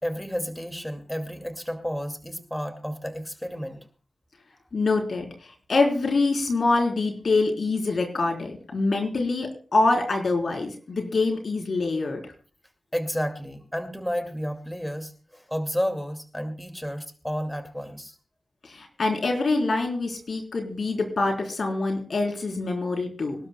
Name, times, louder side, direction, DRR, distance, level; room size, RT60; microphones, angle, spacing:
voice 1, 0.0-3.9 12.9-18.2, equal, 10° left, 6 dB, 2.3 m, -31 dB
voice 2, 4.7-5.3 5.7-12.2 18.7-23.4, left 3 dB, 70° left, 2 dB, 3.9 m, -25 dB
25.5 x 12.0 x 2.3 m, 0.39 s
cardioid pair, 45°, 0 cm